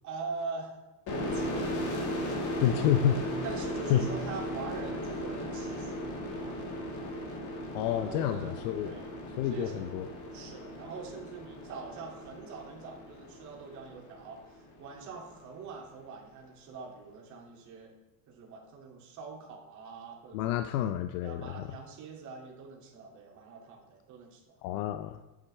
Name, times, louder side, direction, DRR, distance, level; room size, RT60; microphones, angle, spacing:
voice 1, 0.0-0.7 1.1-3.0 3.4-6.6 7.9-9.1 9.4-9.8 10.3-17.9 18.3-20.6 21.2-24.6, right 4 dB, 40° right, -2 dB, 2.3 m, -44 dB
sound 1, 1.1-14.5, equal, 40° left, 1.7 m, -37 dB
voice 2, 2.6-3.2 3.9-4.0 7.7-8.9 9.4-10.1 20.3-21.7 24.6-25.2, left 11 dB, 70° left, 9 dB, 0.6 m, -29 dB
8.5 x 8.3 x 3.2 m, 1.0 s
supercardioid pair, 145°, 45 cm